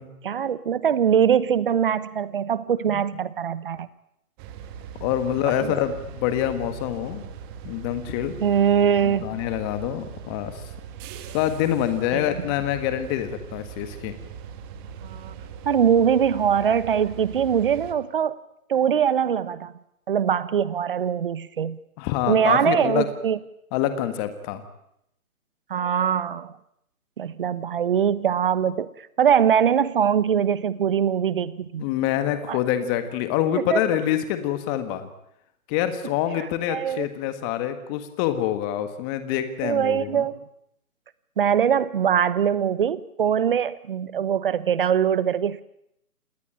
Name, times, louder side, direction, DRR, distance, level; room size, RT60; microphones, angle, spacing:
voice 1, 0.2-3.9 5.5-5.7 8.4-9.4 12.1-12.2 15.0-15.3 15.6-18.4 18.7-19.7 20.1-21.8 22.3-23.4 25.7-26.5 27.2-28.9 29.2-31.8 32.5-32.6 33.7-33.8 36.7-37.1 39.6-40.4 41.4-45.6, right 8 dB, 35° right, 16 dB, 1.2 m, -22 dB
sound 1, 4.4-17.9, right 7 dB, 15° right, 1.6 m, -40 dB
voice 2, 5.0-7.3 7.6-8.3 9.0-10.6 11.3-14.1 22.0-23.1 23.7-24.6 31.8-35.1 35.7-40.3, left 11 dB, 15° left, 9 dB, 1.6 m, -26 dB
28.5 x 20.0 x 8.8 m, 0.78 s
figure-of-eight pair, 145°, 45 cm